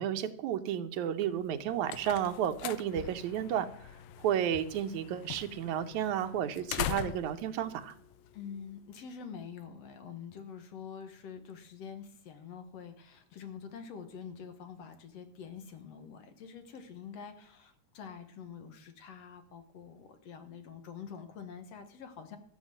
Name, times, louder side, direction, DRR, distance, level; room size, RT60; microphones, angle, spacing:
voice 1, 0.0-3.7 4.2-7.9, right 10 dB, 80° right, 9 dB, 2.3 m, -32 dB
sound 1, 1.4-8.9, left 12 dB, 80° left, 2.0 m, -42 dB
voice 2, 8.3-22.4, left 7 dB, 65° left, 8 dB, 2.3 m, -46 dB
13.0 x 8.2 x 7.5 m, 0.67 s
omnidirectional pair, 3.3 m